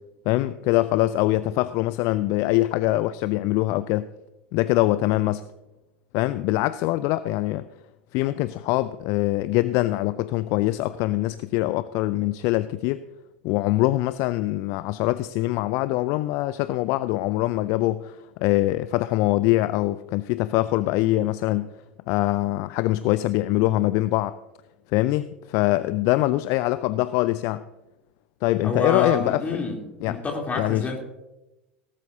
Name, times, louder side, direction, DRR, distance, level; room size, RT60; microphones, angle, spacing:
voice 1, 0.3-4.1 4.5-5.4 6.1-7.6 8.1-13.0 13.4-21.7 22.1-24.3 24.9-27.6 28.4-29.6 30.0-30.2 30.6-30.9, left 17 dB, 50° left, 15 dB, 0.4 m, -23 dB
voice 2, 28.6-31.0, left 3 dB, 20° left, 1 dB, 3.4 m, -28 dB
18.0 x 12.5 x 2.8 m, 1.0 s
figure-of-eight pair, 80°, 7 cm